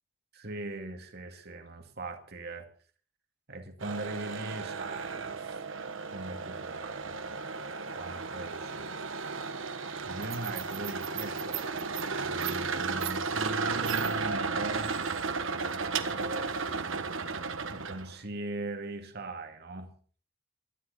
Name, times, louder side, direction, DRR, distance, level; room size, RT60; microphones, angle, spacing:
voice 1, 0.3-2.7 3.5-5.6 6.1-7.4 8.0-8.9 10.0-11.7 12.2-15.0 16.0-16.8 17.6-19.9, right 2 dB, 50° right, 5 dB, 2.3 m, -40 dB
sound 1, 3.8-18.1, right 4 dB, 70° right, 1.3 m, -34 dB
20.5 x 13.0 x 4.2 m, 0.43 s
head